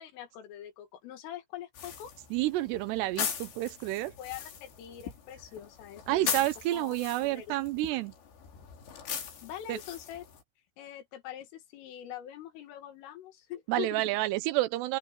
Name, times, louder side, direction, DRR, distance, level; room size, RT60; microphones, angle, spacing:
voice 1, 0.0-2.1 4.0-6.5 6.7-7.6 7.9-8.0 9.4-10.2 10.8-14.0, left 11 dB, 85° left, 4.8 m, -43 dB
sound 1, 1.8-10.4, left 8 dB, 65° left, 5.5 m, -40 dB
voice 2, 2.3-4.1 6.1-8.1 9.7-9.8 13.7-15.0, right 16 dB, 80° right, 2.5 m, -29 dB
open air
omnidirectional pair, 5.6 m